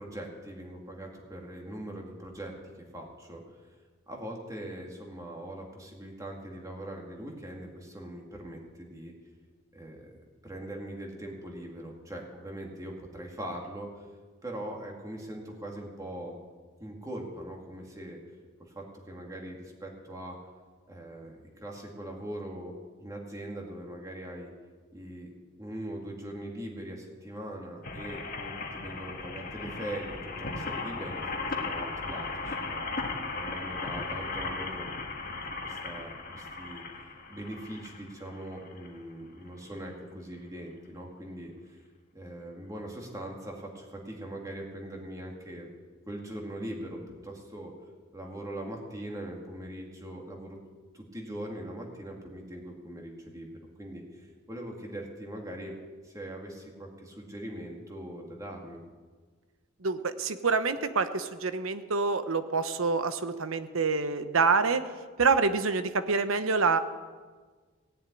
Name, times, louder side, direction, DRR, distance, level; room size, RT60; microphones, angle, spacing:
voice 1, 0.0-2.6 2.9-3.4 4.1-9.1 9.7-10.1 10.4-14.1 14.4-16.4 16.8-18.2 18.7-20.4 20.9-22.7 23.0-24.5 24.9-32.8 33.3-34.9 35.4-36.8 37.3-41.8 42.1-45.7 46.1-47.7 48.1-50.6 50.9-55.8 56.0-58.8, right 1 dB, 15° right, 0 dB, 2.3 m, -41 dB
sound 1, 27.8-39.0 39.6-39.7 39.9-40.0, left 3 dB, 45° left, 1.7 m, -37 dB
voice 2, 59.8-64.8 65.2-66.8, right 4 dB, 75° right, 10 dB, 1.0 m, -26 dB
17.0 x 7.3 x 9.8 m, 1.5 s
head